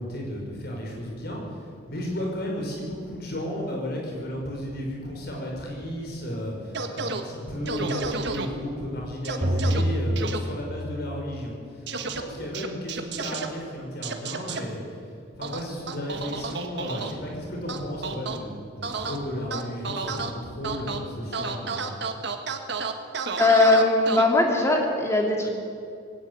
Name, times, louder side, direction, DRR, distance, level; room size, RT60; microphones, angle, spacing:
voice 1, 0.0-15.0 15.3-21.8, left 1 dB, 55° left, 0 dB, 5.8 m, -33 dB
sound 1, 6.7-7.2 7.7-8.5 9.2-9.8 10.2-10.4 11.9-12.2 12.5-13.5 14.0-14.6 15.4-17.1 17.7-18.4 18.8-19.2 19.5-20.3 20.6-21.0 21.3-24.2, right 4 dB, 60° right, 1.5 m, -31 dB
sound 2, 9.4-11.3, equal, 40° right, 3.8 m, -27 dB
voice 2, 23.4-25.5, left 2 dB, 15° left, 1 dB, 3.1 m, -20 dB
19.0 x 17.5 x 8.5 m, 2.4 s
head